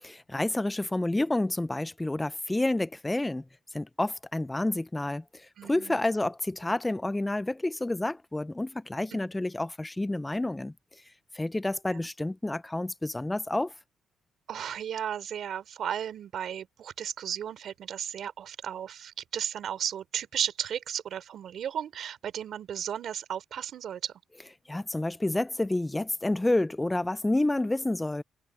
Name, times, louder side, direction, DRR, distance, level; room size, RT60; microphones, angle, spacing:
voice 1, 0.0-3.4 3.7-10.7 11.3-13.7 24.7-28.2, left 2 dB, 10° left, 0.5 m, -29 dB
voice 2, 5.6-6.0 9.1-9.2 11.9-12.0 14.5-24.1, right 9 dB, 65° right, 3.6 m, -34 dB
cardioid pair, 90°, 0 cm